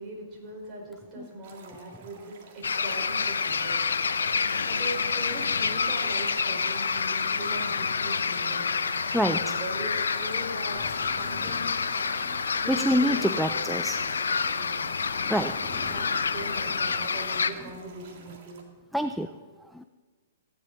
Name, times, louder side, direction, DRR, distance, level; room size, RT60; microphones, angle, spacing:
voice 1, 0.0-3.8 4.6-8.7 9.2-11.7 12.6-13.6 14.5-14.9 15.6-18.6, right 1 dB, 25° right, -2 dB, 4.4 m, -40 dB
sound 1, 1.4-18.6, right 4 dB, 50° right, 2.0 m, -51 dB
sound 2, 2.6-17.5, left 5 dB, 75° left, 0.6 m, -28 dB
voice 2, 9.1-9.6 12.7-14.0 15.3-15.6 18.9-19.3 19.7-19.8, equal, ahead, 8 dB, 0.4 m, -26 dB
sound 3, 10.7-18.4, left 4 dB, 20° left, 1.9 m, -47 dB
15.0 x 10.5 x 3.9 m, 1.4 s
hypercardioid pair, 120°, 0 cm